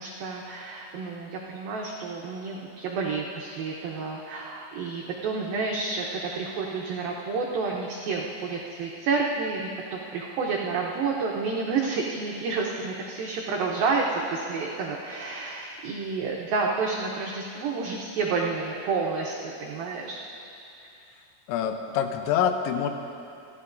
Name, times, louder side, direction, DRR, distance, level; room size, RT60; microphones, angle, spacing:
voice 1, 0.0-20.2, right 4 dB, 90° right, -2 dB, 2.0 m, -30 dB
voice 2, 21.5-22.9, left 8 dB, 80° left, 6 dB, 2.9 m, -25 dB
29.0 x 11.5 x 2.6 m, 2.6 s
omnidirectional pair, 5.4 m